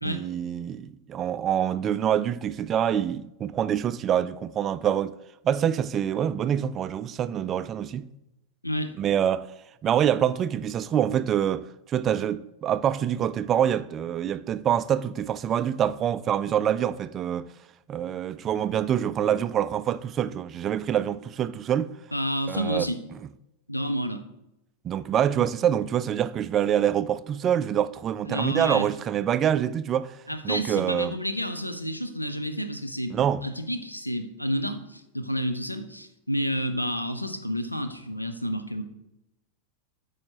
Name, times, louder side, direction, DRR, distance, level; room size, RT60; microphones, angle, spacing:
voice 1, 0.0-5.1 5.4-8.1 9.0-9.5 9.8-17.5 17.9-21.9 22.5-22.9 24.8-30.1 30.4-31.2 33.1-33.5, right 9 dB, 30° right, 0.3 m, -26 dB
voice 2, 22.1-23.0 23.7-24.2 28.3-28.9 30.3-38.8, equal, 85° left, 0.6 m, -30 dB
13.0 x 4.9 x 2.9 m
figure-of-eight pair, 90°, 0 cm